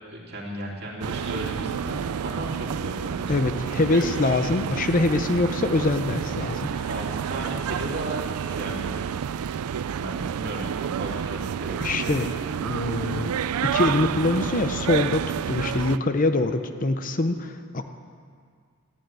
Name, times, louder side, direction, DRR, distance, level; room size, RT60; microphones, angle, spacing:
voice 1, 0.1-4.1 6.9-9.1 9.9-12.2, right 1 dB, 45° right, -2 dB, 2.9 m, -35 dB
sound 1, 1.0-16.0, right 8 dB, 85° right, 0.4 m, -29 dB
voice 2, 3.3-6.9 7.4-7.5 11.8-12.3 12.6-13.3 13.6-17.9, left 2 dB, 35° left, 8 dB, 0.6 m, -24 dB
14.0 x 11.0 x 8.9 m, 2.1 s
head